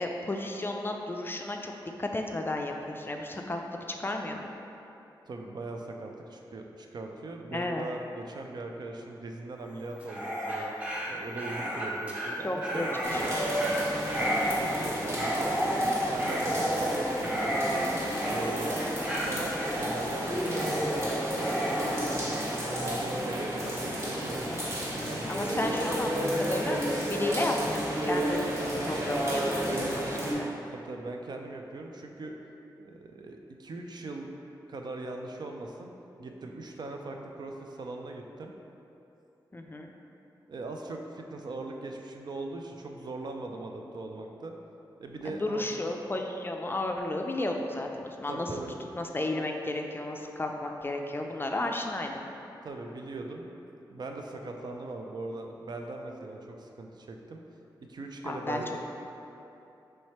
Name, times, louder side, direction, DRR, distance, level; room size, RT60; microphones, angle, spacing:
voice 1, 0.0-1.7 2.0-3.6 3.9-4.4 7.5-7.9 12.4-13.4 25.3-26.8 27.1-28.5 28.8-30.5 39.5-39.9 45.2-48.5 48.9-52.2 58.2-58.6, left 2 dB, 25° left, 3 dB, 0.4 m, -33 dB
voice 2, 5.3-10.7 11.1-13.4 14.1-17.9 18.2-22.4 22.8-24.5 25.0-25.3 30.7-32.3 32.8-34.3 34.7-35.9 36.2-38.5 40.5-44.5 45.0-45.6 48.3-48.7 52.6-53.5 53.9-57.4 57.9-58.8, right 2 dB, 55° right, 2 dB, 0.4 m, -40 dB
Dog, 10.0-23.0, equal, 15° right, 0.8 m, -32 dB
sound 1, 13.0-30.3, equal, 30° right, 1.1 m, -31 dB
3.2 x 3.1 x 4.2 m, 2.9 s
cardioid pair, 60°, 8 cm